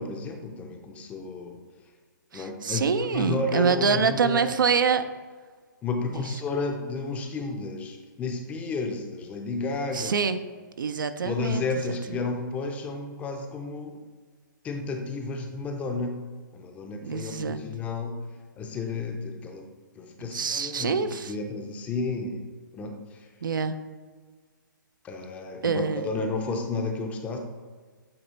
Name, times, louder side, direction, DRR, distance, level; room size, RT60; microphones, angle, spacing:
voice 1, 0.0-1.6 2.3-4.5 5.8-10.1 11.2-14.0 14.6-16.2 16.5-18.2 18.6-19.7 20.0-22.5 22.7-23.3 25.0-27.4, left 3 dB, 10° left, 4 dB, 0.5 m, -32 dB
voice 2, 2.3-5.0 6.1-6.3 9.9-10.4 10.8-11.6 17.0-17.6 20.2-21.3 23.4-23.8 25.6-26.0, right 5 dB, 75° right, 11 dB, 0.5 m, -26 dB
8.6 x 2.9 x 4.1 m, 1.5 s
hypercardioid pair, 145°, 11 cm